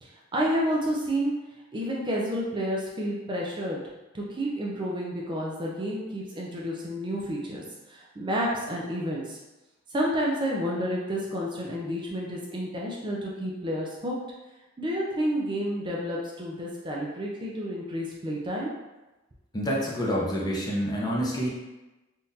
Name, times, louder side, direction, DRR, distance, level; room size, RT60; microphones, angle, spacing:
voice 1, 0.0-1.3 1.7-3.8 4.1-9.4 9.9-14.2 14.8-18.7, equal, 25° right, -3 dB, 0.4 m, -30 dB
voice 2, 19.5-21.5, equal, 20° left, -4 dB, 0.6 m, -27 dB
3.6 x 2.4 x 2.7 m, 1.1 s
head